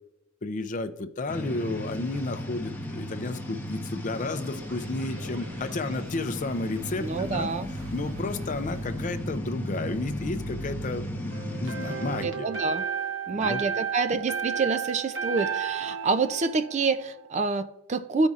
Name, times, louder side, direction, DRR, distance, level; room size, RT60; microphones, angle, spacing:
voice 1, 0.4-7.5 7.9-12.5 13.3-13.6, left 2 dB, 40° left, 10 dB, 0.5 m, -32 dB
sound 1, 1.3-12.3, equal, 10° left, 0.8 m, -35 dB
sound 2, 4.1-10.9, left 1 dB, 80° right, 1.4 m, -46 dB
voice 2, 7.0-7.7 12.2-12.8 13.3-18.3, right 4 dB, 35° right, 11 dB, 0.4 m, -27 dB
sound 3, 11.3-17.3, right 7 dB, 65° right, 1.1 m, -33 dB
14.5 x 5.2 x 2.4 m, 0.90 s
head